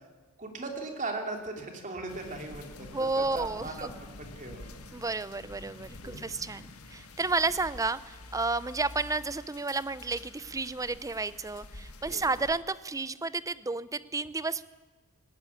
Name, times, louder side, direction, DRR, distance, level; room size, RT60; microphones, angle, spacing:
voice 1, 0.4-2.9 3.3-3.9 4.2-4.8 6.0-6.2 12.1-12.2, right 3 dB, 35° right, 3 dB, 3.2 m, -38 dB
sound 1, 2.1-12.6, left 2 dB, 85° left, 1.8 m, -47 dB
voice 2, 2.9-4.0 4.9-14.6, right 3 dB, 15° right, 16 dB, 0.5 m, -32 dB
19.0 x 15.0 x 9.8 m, 1.3 s
head